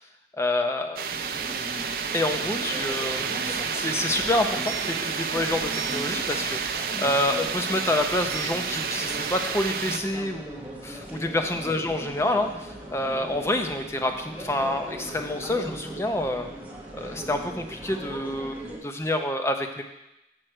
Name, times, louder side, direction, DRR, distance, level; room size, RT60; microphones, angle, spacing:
voice 1, 0.4-1.0 2.1-16.5 17.0-19.8, left 1 dB, 15° left, 5 dB, 0.6 m, -28 dB
sound 1, 1.0-10.0, right 6 dB, 55° right, 0.5 m, -30 dB
sound 2, 1.1-18.8, right 1 dB, 10° right, 1.1 m, -39 dB
7.9 x 6.2 x 4.5 m, 0.92 s
head